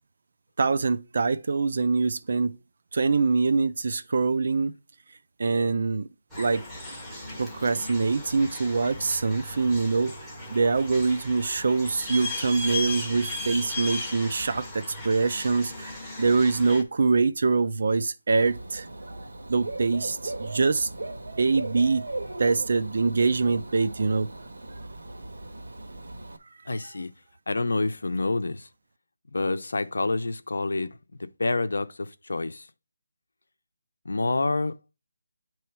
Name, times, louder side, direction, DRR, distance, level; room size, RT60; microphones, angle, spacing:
voice 1, 0.6-2.6 2.9-4.7 5.4-6.1 6.4-6.6 7.4-10.1 10.5-18.9 19.5-20.9 21.4-22.1 22.4-24.3, right 4 dB, 40° right, 0.4 m, -24 dB
sound 1, 6.3-16.8, left 2 dB, ahead, 0.7 m, -37 dB
Dog / Bird, 18.4-26.4, right 2 dB, 80° right, 1.3 m, -38 dB
voice 2, 26.7-27.1 27.5-28.7 29.3-32.7 34.0-34.7, left 3 dB, 65° left, 0.7 m, -28 dB
8.8 x 3.1 x 4.6 m
hypercardioid pair, 180°, 0 cm